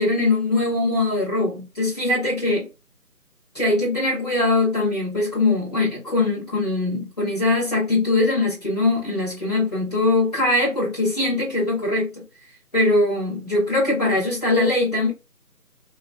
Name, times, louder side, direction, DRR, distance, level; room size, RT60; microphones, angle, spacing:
voice 1, 0.0-2.7 3.5-12.2 12.7-15.1, left 2 dB, 25° left, 1.4 m, -21 dB
3.0 x 2.3 x 2.3 m
figure-of-eight pair, 170°, 47 cm